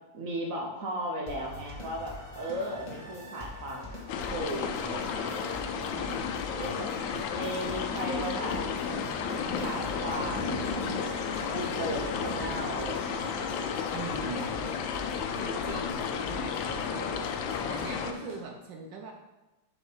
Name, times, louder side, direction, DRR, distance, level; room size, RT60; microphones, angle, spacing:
voice 1, 0.1-4.0 4.3-5.3 6.5-6.9 7.3-8.6 9.6-10.7 11.5-13.5 15.8-16.4, right 1 dB, 55° right, 0 dB, 1.1 m, -36 dB
sound 1, 1.3-18.4, left 2 dB, 20° left, 1.0 m, -44 dB
sound 2, 4.1-18.1, left 6 dB, 85° left, 1.4 m, -33 dB
sound 3, 4.4-12.5, left 2 dB, 65° left, 1.3 m, -41 dB
voice 2, 5.9-6.5 13.9-14.7 15.4-19.1, right 4 dB, 75° right, 1 dB, 1.4 m, -42 dB
7.0 x 3.5 x 5.5 m, 1.1 s
omnidirectional pair, 2.0 m